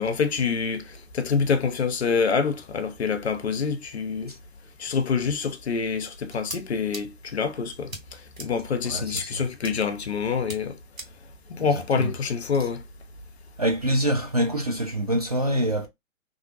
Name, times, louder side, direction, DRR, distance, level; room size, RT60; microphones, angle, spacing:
voice 1, 0.0-4.4 4.8-10.8 11.5-12.8, left 5 dB, 50° left, 0.6 m, -26 dB
sound 1, 6.3-6.6 6.9-7.0 7.9-8.0 8.4-8.5 9.2-9.3 9.6-9.7 10.5-10.6 11.0-11.1, right 2 dB, 80° right, 1.6 m, -36 dB
voice 2, 8.9-9.3 11.9-12.1 13.6-15.9, right 1 dB, 30° right, 0.4 m, -25 dB
2.6 x 2.1 x 2.4 m
figure-of-eight pair, 130°, 40 cm